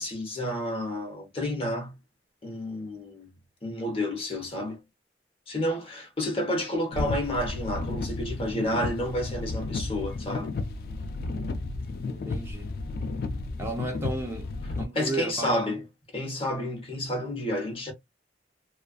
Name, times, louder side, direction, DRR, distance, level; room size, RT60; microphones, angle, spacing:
voice 1, 0.0-1.9 2.4-3.3 3.6-4.8 5.5-10.5 14.9-15.8 16.1-17.9, left 1 dB, 30° left, 0.9 m, -30 dB
sound 1, 6.9-14.8, left 3 dB, 55° left, 0.3 m, -33 dB
voice 2, 12.1-12.7 13.6-14.5 14.8-15.8, right 2 dB, 15° right, 0.6 m, -34 dB
2.4 x 2.4 x 2.3 m
head